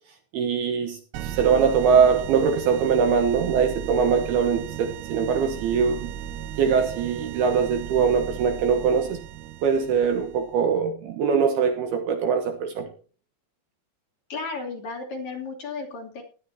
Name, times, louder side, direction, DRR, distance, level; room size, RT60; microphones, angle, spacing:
voice 1, 0.3-6.1 6.6-9.2 9.6-12.9, right 6 dB, 70° right, 2.7 m, -22 dB
sound 1, 1.1-10.6, right 10 dB, 90° right, 3.3 m, -36 dB
voice 2, 14.3-16.2, left 4 dB, 45° left, 3.6 m, -34 dB
19.0 x 11.0 x 2.9 m
omnidirectional pair, 5.5 m